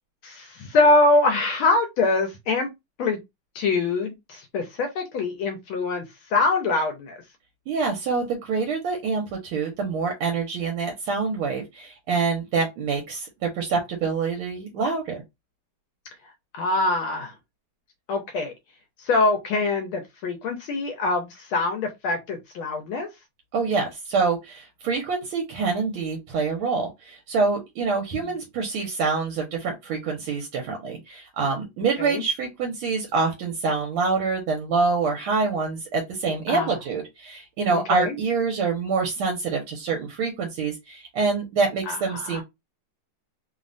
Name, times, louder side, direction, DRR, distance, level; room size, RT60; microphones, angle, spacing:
voice 1, 0.2-2.7 3.0-3.2 3.5-6.0 6.3-7.2 16.5-17.3 18.1-18.5 19.0-23.1 32.0-32.2 36.5-36.7 37.7-38.1 41.9-42.4, left 3 dB, 75° left, 1.4 m, -24 dB
voice 2, 7.7-15.2 23.5-42.4, right 4 dB, 80° right, 1.5 m, -26 dB
3.5 x 2.1 x 2.5 m
omnidirectional pair, 2.4 m